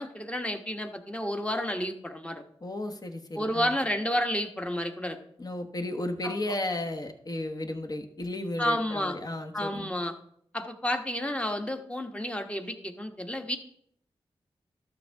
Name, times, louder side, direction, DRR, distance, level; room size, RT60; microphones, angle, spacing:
voice 1, 0.0-2.4 3.4-5.2 6.2-6.3 8.6-9.1 9.5-10.1 10.5-13.6, equal, 10° left, 5 dB, 1.2 m, -31 dB
voice 2, 2.6-3.8 5.4-9.9, left 1 dB, 40° left, 6 dB, 1.3 m, -34 dB
12.5 x 6.7 x 3.5 m, 0.67 s
cardioid pair, 70°, 10 cm